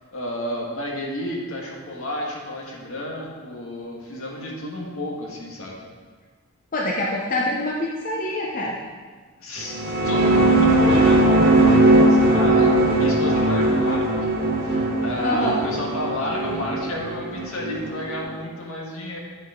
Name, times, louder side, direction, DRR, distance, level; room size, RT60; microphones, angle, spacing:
voice 1, 0.1-5.8 9.4-19.2, left 1 dB, 70° left, -2 dB, 1.7 m, -31 dB
voice 2, 6.7-8.8 15.2-15.6, left 1 dB, 35° left, -2 dB, 0.7 m, -25 dB
sound 1, 9.6-18.2, right 2 dB, 40° right, 1.4 m, -19 dB
9.3 x 7.2 x 3.8 m, 1.4 s
head